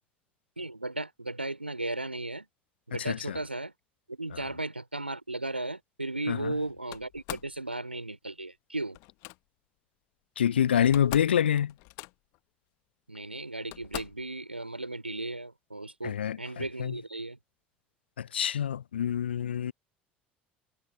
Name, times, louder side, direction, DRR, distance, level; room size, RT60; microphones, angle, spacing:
voice 1, 0.6-2.5 2.9-3.7 4.1-9.0 13.1-17.4, right 2 dB, 85° right, 3.9 m, -36 dB
voice 2, 3.1-3.4 6.3-6.5 10.4-11.7 16.0-16.4 16.8-16.9 18.2-19.7, left 9 dB, 75° left, 0.5 m, -26 dB
Slam, 6.9-7.6 8.9-9.4 10.5-10.6 10.8-11.4 11.7-12.4 13.1-13.2 13.7-14.3, left 29 dB, 55° left, 1.0 m, -41 dB
figure-of-eight pair, 65°, 6 cm